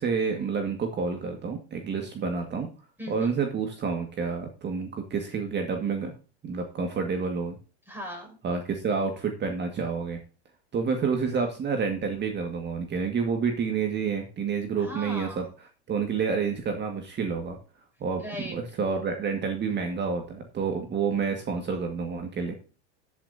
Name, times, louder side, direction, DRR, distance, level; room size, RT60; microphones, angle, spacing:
voice 1, 0.0-2.7 3.1-6.1 6.4-7.6 8.4-10.2 10.7-15.4 15.9-17.6 18.0-22.5, right 5 dB, 30° right, 5 dB, 1.9 m, -29 dB
voice 2, 3.0-3.3 7.9-8.4 14.8-15.5 18.2-18.6, equal, 5° right, 1 dB, 6.0 m, -38 dB
14.5 x 8.7 x 2.8 m, 0.35 s
supercardioid pair, 110°, 34 cm